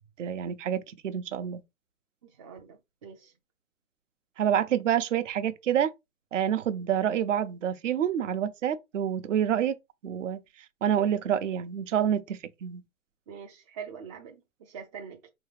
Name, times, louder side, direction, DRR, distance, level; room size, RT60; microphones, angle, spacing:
voice 1, 0.2-1.6 4.4-5.9 6.3-9.8 10.0-10.4 10.8-12.8, right 9 dB, 60° right, 0.8 m, -27 dB
voice 2, 2.4-3.3 13.3-15.3, right 7 dB, 25° right, 0.4 m, -44 dB
4.7 x 3.1 x 3.2 m
figure-of-eight pair, 115°, 42 cm